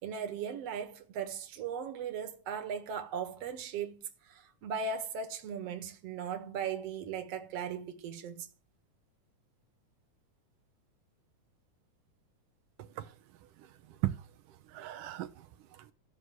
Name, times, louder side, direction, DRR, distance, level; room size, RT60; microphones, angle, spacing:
voice 1, 0.0-8.5, right 6 dB, 55° right, 2.6 m, -38 dB
voice 2, 12.8-13.1 13.6-14.2 14.7-15.9, right 14 dB, 85° right, 2.5 m, -38 dB
14.5 x 6.6 x 9.2 m
omnidirectional pair, 3.6 m